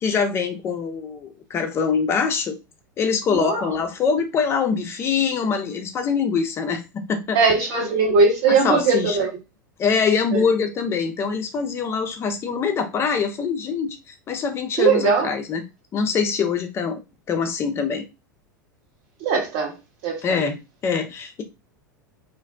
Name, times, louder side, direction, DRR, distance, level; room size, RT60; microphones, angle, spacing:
voice 1, 0.0-2.6 3.0-7.4 8.5-9.2 9.8-15.6 15.9-17.0 17.3-18.0 20.2-20.6 20.8-21.4, left 6 dB, 25° left, 0.5 m, -24 dB
voice 2, 3.3-3.6 7.3-9.3 10.3-10.4 14.8-15.3 19.2-19.8 20.0-20.4, right 4 dB, 45° right, 0.9 m, -19 dB
2.5 x 2.1 x 2.3 m
figure-of-eight pair, 85°, 10 cm